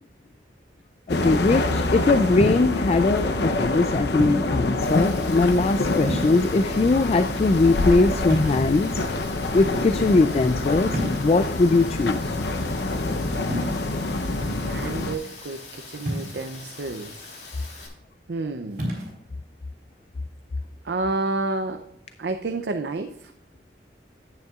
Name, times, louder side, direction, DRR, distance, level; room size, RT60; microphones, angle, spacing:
sound 1, 1.1-15.2, left 2 dB, 70° left, 0.7 m, -26 dB
voice 1, 1.1-9.1 9.5-12.4, left 3 dB, 35° left, 11 dB, 0.3 m, -21 dB
sound 2, 2.4-2.8 4.2-4.6 6.0-6.7 8.3-9.0 10.9-11.4 13.5-13.7 16.1-16.6 18.7-19.1, equal, 50° right, 3.7 m, -29 dB
Rain, 4.8-17.9, left 4 dB, 90° left, 2.9 m, -43 dB
voice 2, 14.3-17.3 18.3-18.8 20.8-21.8 22.2-23.3, right 3 dB, 75° right, 7 dB, 0.6 m, -30 dB
10.5 x 9.1 x 2.4 m, 0.83 s
head